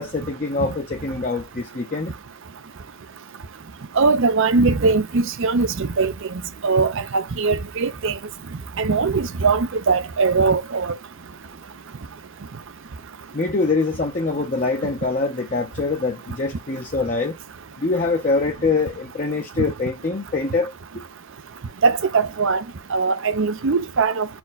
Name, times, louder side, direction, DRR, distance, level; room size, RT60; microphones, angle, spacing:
voice 1, 0.0-2.1 13.3-17.3 17.8-20.7, left 3 dB, 35° left, 0.6 m, -24 dB
voice 2, 4.0-6.1 6.6-8.1 8.8-10.8 21.8-22.6 22.9-24.2, right 4 dB, 60° right, 0.6 m, -20 dB
4.4 x 2.3 x 3.9 m
head